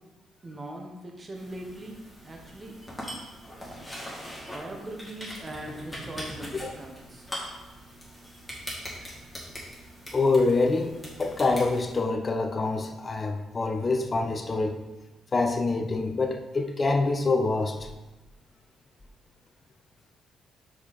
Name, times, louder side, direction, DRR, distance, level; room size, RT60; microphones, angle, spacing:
voice 1, 0.4-2.7 4.5-7.3, right 1 dB, 25° right, 1 dB, 1.1 m, -40 dB
sound 1, 1.3-12.0, equal, 10° left, 2.2 m, -41 dB
voice 2, 10.1-14.8 15.3-17.9, left 3 dB, 30° left, 5 dB, 0.6 m, -26 dB
6.1 x 4.7 x 4.1 m, 1.1 s
cardioid pair, 90°, 0 cm